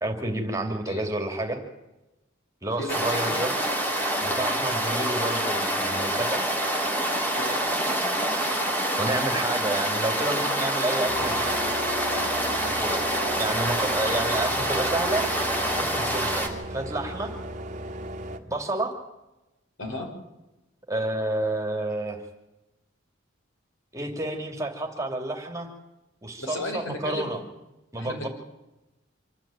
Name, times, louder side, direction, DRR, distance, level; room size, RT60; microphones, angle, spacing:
voice 1, 0.0-1.6 2.6-3.5 4.2-6.4 9.0-11.5 12.8-15.3 15.8-17.3 18.5-18.9 20.9-22.2 23.9-25.7 26.2-27.4 27.9-28.3, right 1 dB, 15° right, 3 dB, 2.8 m, -30 dB
voice 2, 2.8-3.5 7.4-7.6 19.8-20.1 26.4-27.3 28.0-28.3, left 1 dB, 70° left, 2 dB, 5.6 m, -34 dB
sound 1, 2.9-16.5, right 1 dB, 10° left, 3.0 m, -26 dB
sound 2, 11.1-18.4, right 1 dB, 40° right, 1.8 m, -36 dB
26.0 x 13.5 x 9.0 m, 0.98 s
head